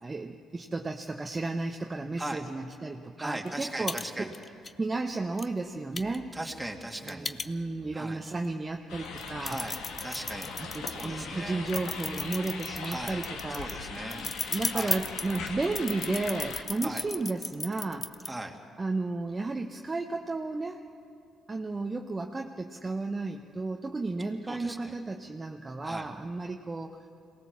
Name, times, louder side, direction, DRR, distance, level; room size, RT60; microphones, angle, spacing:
voice 1, 0.0-4.3 4.8-6.3 7.0-9.6 10.6-13.7 14.5-18.1 18.8-20.8 21.5-27.0, right 3 dB, 25° right, 3 dB, 1.0 m, -33 dB
voice 2, 3.2-4.4 6.3-7.3 7.9-8.2 9.4-10.6 10.9-11.6 12.8-13.2 13.5-14.3 14.7-15.0 16.8-17.0 18.3-18.6 24.4-24.9 25.8-26.1, right 1 dB, 10° right, 2 dB, 2.4 m, -38 dB
sound 1, 3.5-3.6 3.9-4.0 4.3-4.7 5.4-5.5 6.0-7.9 8.4-8.5 9.0-11.1 11.7-18.3, left 4 dB, 35° left, 0.8 m, -35 dB
sound 2, 8.9-16.6, left 4 dB, 85° left, 1.7 m, -40 dB
23.0 x 18.5 x 7.3 m, 2.5 s
supercardioid pair, 65°, 0 cm